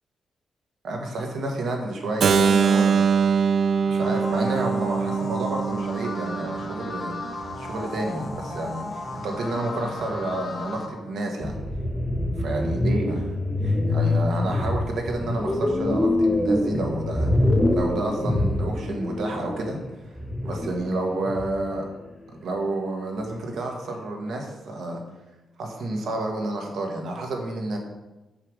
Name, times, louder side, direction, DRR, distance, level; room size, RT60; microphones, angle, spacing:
voice 1, 0.8-3.0 3.9-7.2 7.6-11.6 12.4-13.3 13.6-17.3 17.7-19.8 20.4-21.9 22.3-25.0 25.6-27.8, right 2 dB, 70° right, 1 dB, 1.5 m, -30 dB
Keyboard (musical), 2.2-8.0, right 6 dB, 50° right, 0.4 m, -23 dB
sound 1, 4.0-10.9, left 3 dB, 25° left, 1.1 m, -35 dB
sound 2, 11.4-19.9 20.2-21.6, left 1 dB, 10° left, 1.0 m, -25 dB
6.8 x 5.7 x 4.8 m, 1.1 s
wide cardioid pair, 145°, 0 cm